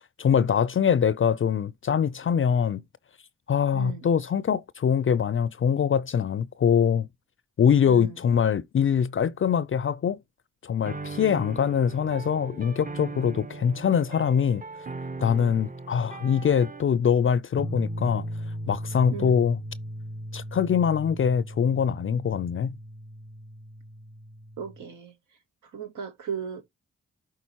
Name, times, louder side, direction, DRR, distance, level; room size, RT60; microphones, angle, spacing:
voice 1, 0.0-2.8 3.5-7.1 7.6-10.2 10.6-14.6 15.2-18.3 18.7-19.6 20.3-22.7, left 7 dB, 45° left, 0.5 m, -23 dB
voice 2, 3.7-4.1 7.9-8.1 19.1-19.4 24.6-25.1 25.7-26.6, right 7 dB, 75° right, 1.0 m, -36 dB
sound 1, 10.9-16.8, right 3 dB, 25° right, 0.8 m, -39 dB
sound 2, 17.5-24.8, equal, 60° right, 3.2 m, -37 dB
11.0 x 3.9 x 2.9 m
supercardioid pair, 40°, 30 cm